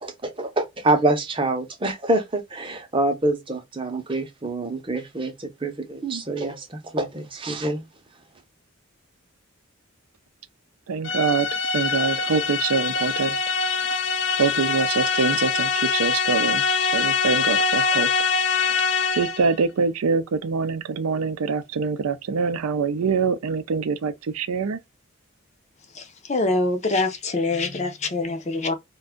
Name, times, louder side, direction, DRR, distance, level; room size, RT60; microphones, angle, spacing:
voice 1, 0.0-7.8, right 2 dB, 25° right, 0.6 m, -26 dB
voice 2, 10.9-11.5 11.7-13.4 14.4-18.1 18.6-18.8 19.1-24.8, right 5 dB, 85° right, 0.4 m, -24 dB
sound 1, 11.0-19.5, left 5 dB, 65° left, 0.7 m, -23 dB
voice 3, 26.3-28.7, left 2 dB, 30° left, 0.5 m, -24 dB
2.5 x 2.2 x 3.6 m
head